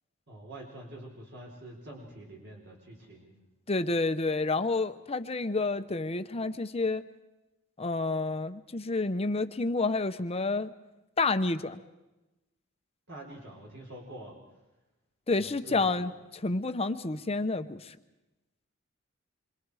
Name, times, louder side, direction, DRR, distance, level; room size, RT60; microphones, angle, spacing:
voice 1, 0.3-3.3 13.1-14.3 15.3-16.0, right 1 dB, 55° right, -1 dB, 4.1 m, -46 dB
voice 2, 3.7-7.0 7.8-10.7 11.2-11.8 15.3-18.0, left 3 dB, 30° left, 10 dB, 0.8 m, -29 dB
27.5 x 24.5 x 4.9 m, 1.0 s
head